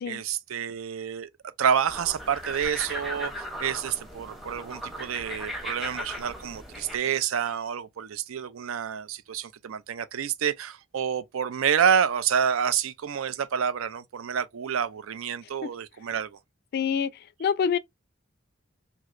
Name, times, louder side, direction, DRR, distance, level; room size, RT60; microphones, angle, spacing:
voice 1, 0.1-1.3 1.6-16.4, right 7 dB, 85° right, 0.4 m, -28 dB
sound 1, 1.8-7.0, equal, ahead, 0.6 m, -37 dB
voice 2, 16.7-17.1 17.4-17.8, left 7 dB, 50° left, 0.3 m, -25 dB
3.1 x 2.7 x 2.4 m
head